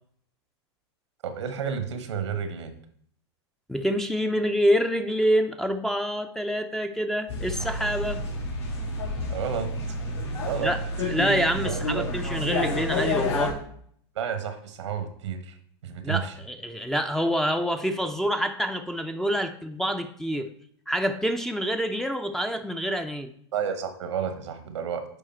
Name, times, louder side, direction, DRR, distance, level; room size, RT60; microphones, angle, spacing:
voice 1, 1.2-2.7 9.3-9.7 10.4-10.7 11.5-12.1 12.4-12.5 14.1-15.6 15.8-16.3 23.5-25.0, right 7 dB, 85° right, 8 dB, 1.3 m, -31 dB
voice 2, 3.7-8.2 10.6-10.8 11.1-13.6 16.0-20.5 20.9-23.3, equal, 5° left, 7 dB, 0.6 m, -26 dB
sound 1, 7.3-13.5, left 1 dB, 80° left, 3.0 m, -29 dB
9.9 x 3.6 x 4.5 m, 0.62 s
hypercardioid pair, 115°, 15 cm